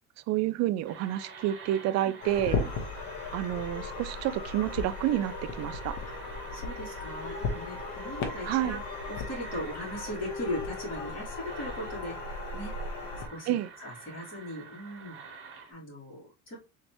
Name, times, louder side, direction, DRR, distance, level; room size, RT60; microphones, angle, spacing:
voice 1, 0.3-2.6 3.3-6.0 8.4-8.8 13.5-13.7, right 13 dB, 60° right, 0.5 m, -29 dB
sound 1, 0.9-15.7, right 5 dB, 40° right, 1.3 m, -47 dB
sound 2, 2.2-13.3, left 4 dB, 70° left, 1.1 m, -36 dB
voice 2, 6.5-8.8 9.1-15.2 15.7-16.6, equal, 25° left, 2.7 m, -39 dB
3.9 x 3.3 x 3.0 m
cardioid pair, 115°, 30 cm